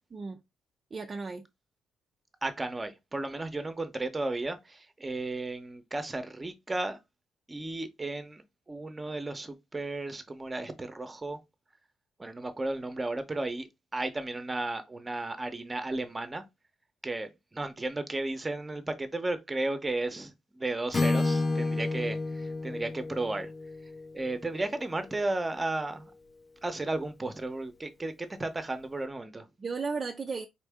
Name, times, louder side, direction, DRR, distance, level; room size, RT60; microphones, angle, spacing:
voice 1, 0.1-0.4 0.9-1.5 29.6-30.5, right 4 dB, 35° right, 0.4 m, -35 dB
voice 2, 2.4-7.0 7.5-11.4 12.2-16.4 17.0-23.5 24.1-26.1 26.6-29.5, right 2 dB, 20° right, 0.8 m, -34 dB
Acoustic guitar / Strum, 20.9-24.9, left 3 dB, 30° left, 0.6 m, -31 dB
4.3 x 2.7 x 3.5 m
cardioid pair, 90°, 0 cm